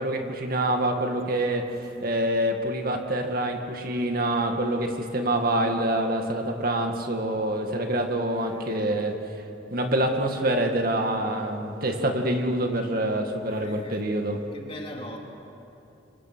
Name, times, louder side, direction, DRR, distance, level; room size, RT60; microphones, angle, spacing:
voice 1, 0.0-1.7 2.0-9.1 9.7-14.4, right 1 dB, 50° right, 4 dB, 2.1 m, -26 dB
voice 2, 8.3-9.1 13.5-14.0 14.5-15.2, left 1 dB, 30° left, 0 dB, 3.0 m, -42 dB
28.5 x 25.0 x 6.2 m, 2.8 s
head